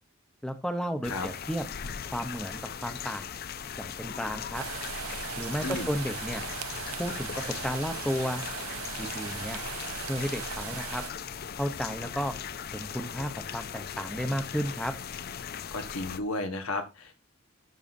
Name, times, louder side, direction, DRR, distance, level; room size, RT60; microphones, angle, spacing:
voice 1, 0.4-1.6 2.1-3.4 3.8-4.6 5.4-6.4 7.0-7.3 7.6-8.4 9.0-9.6 10.1-11.0 11.6-12.3 12.7-14.9, equal, 5° left, 8 dB, 0.8 m, -33 dB
sound 1, 1.0-16.2, left 7 dB, 45° left, 0.5 m, -39 dB
sound 2, 4.5-11.1, right 9 dB, 90° right, 0.7 m, -39 dB
voice 2, 15.7-17.1, left 2 dB, 90° left, 6 dB, 1.6 m, -33 dB
12.5 x 6.3 x 2.6 m, 0.23 s
head